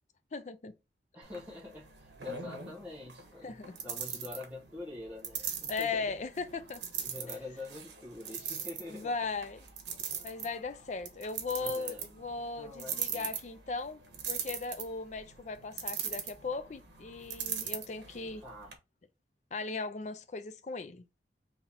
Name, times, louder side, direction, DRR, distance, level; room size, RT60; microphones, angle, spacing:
voice 1, 0.3-0.7 3.4-3.8 5.7-6.8 8.9-9.7 10.2-14.0 14.3-18.4 19.5-21.2, left 4 dB, 40° left, 0.4 m, -38 dB
voice 2, 1.1-6.1 7.0-9.1 11.6-12.0 12.5-13.3 18.4-18.7, left 2 dB, 10° right, 1.0 m, -45 dB
sound 1, 1.2-18.7, right 8 dB, 85° right, 1.0 m, -41 dB
4.0 x 2.8 x 4.1 m
head